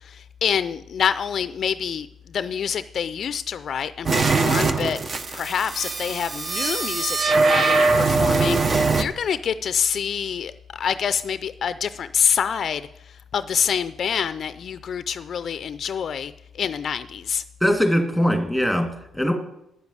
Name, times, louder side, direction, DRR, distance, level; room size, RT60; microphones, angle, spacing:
voice 1, 0.0-5.0 5.3-17.4, left 7 dB, 55° left, 13 dB, 0.4 m, -26 dB
sound 1, 4.1-9.0, right 3 dB, 40° right, 0.8 m, -21 dB
voice 2, 17.6-19.3, equal, 5° right, 4 dB, 2.2 m, -21 dB
9.2 x 7.1 x 8.1 m, 0.82 s
cardioid pair, 90°, 0 cm